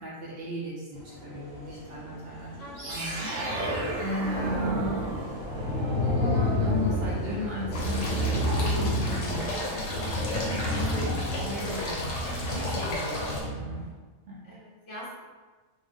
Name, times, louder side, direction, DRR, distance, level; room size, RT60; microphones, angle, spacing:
voice 1, 0.0-2.5 2.8-5.1 5.6-5.7 6.0-9.9 10.3-11.1 11.4-12.1 12.5-13.9 14.3-14.5, equal, 60° right, -5 dB, 0.7 m, -36 dB
sound 1, 0.9-13.9, equal, 50° left, 1.0 m, -46 dB
sound 2, 2.8-13.9, equal, 85° right, 1.1 m, -30 dB
voice 2, 3.9-4.3 9.5-9.9 10.5-10.6 14.4-15.2, equal, 25° left, -8 dB, 0.9 m, -44 dB
sound 3, 7.7-13.4, left 1 dB, 80° left, 1.1 m, -33 dB
2.7 x 2.0 x 3.4 m, 1.3 s
omnidirectional pair, 1.3 m